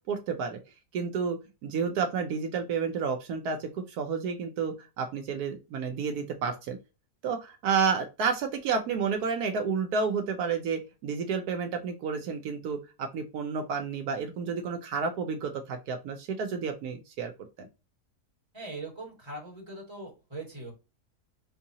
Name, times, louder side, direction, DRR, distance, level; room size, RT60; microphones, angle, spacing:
voice 1, 0.1-0.6 0.9-6.8 7.2-17.3 17.6-17.7, right 5 dB, 75° right, 5 dB, 1.2 m, -30 dB
voice 2, 18.5-20.7, right 2 dB, 15° right, -2 dB, 1.7 m, -41 dB
3.8 x 2.7 x 2.7 m, 0.27 s
omnidirectional pair, 1.7 m